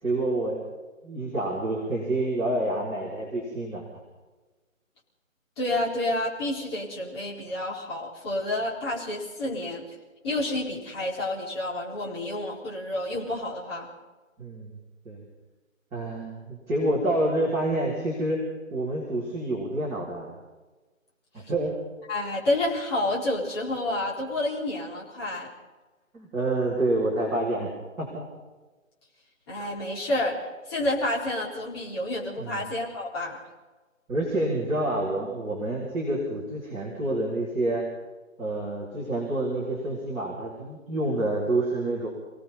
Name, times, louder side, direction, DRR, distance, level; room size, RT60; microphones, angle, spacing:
voice 1, 0.0-0.6 1.0-3.8 14.4-14.8 15.0-15.2 15.9-18.4 18.7-20.3 21.3-21.7 26.1-27.7 28.0-28.2 32.4-32.7 34.1-37.8 38.4-42.1, right 1 dB, 5° right, -10 dB, 3.7 m, -28 dB
voice 2, 5.6-9.8 10.2-13.9 22.1-25.5 29.5-30.4 30.7-33.4, left 1 dB, 20° left, -5 dB, 4.2 m, -29 dB
29.5 x 18.5 x 5.5 m, 1.2 s
figure-of-eight pair, 165°, 41 cm